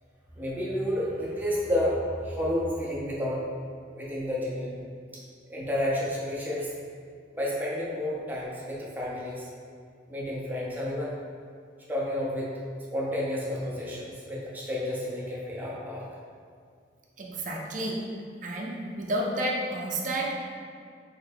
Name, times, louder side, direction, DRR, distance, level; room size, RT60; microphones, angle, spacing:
voice 1, 0.4-3.4 4.0-4.8 5.5-6.7 7.3-9.5 10.1-11.1 11.9-12.6 12.9-16.0, left 1 dB, 10° right, -6 dB, 0.8 m, -30 dB
voice 2, 17.2-18.1 18.4-20.4, right 1 dB, 45° right, -2 dB, 0.5 m, -31 dB
3.5 x 3.4 x 3.4 m, 2.2 s
head